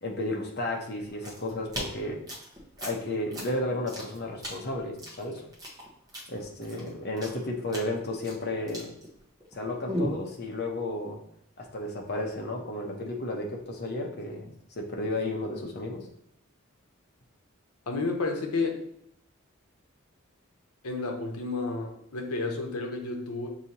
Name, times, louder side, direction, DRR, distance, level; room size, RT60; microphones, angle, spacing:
voice 1, 0.0-2.2 2.8-5.4 6.3-8.9 9.5-11.2 11.6-16.1, left 1 dB, 45° left, 1 dB, 0.8 m, -33 dB
sound 1, 1.0-9.5 9.9-10.2, equal, 15° right, 0.9 m, -37 dB
voice 2, 17.9-18.8 20.8-23.5, left 3 dB, 80° left, 2 dB, 0.8 m, -31 dB
6.6 x 2.8 x 2.9 m, 0.70 s
head